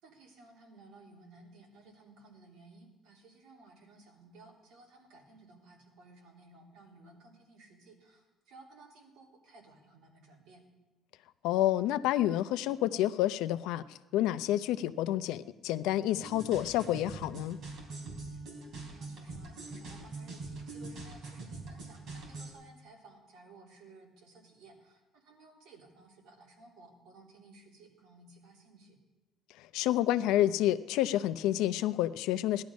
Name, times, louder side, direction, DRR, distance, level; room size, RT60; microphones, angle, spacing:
voice 1, 0.0-10.7 18.3-29.0, right 3 dB, 70° right, -1 dB, 3.3 m, -57 dB
voice 2, 11.4-13.8 14.1-17.6 29.7-32.6, left 13 dB, 85° left, 13 dB, 0.6 m, -29 dB
sound 1, 16.1-22.5, right 3 dB, 50° right, 3.5 m, -43 dB
17.5 x 11.5 x 5.3 m, 1.1 s
cardioid pair, 165°, 0 cm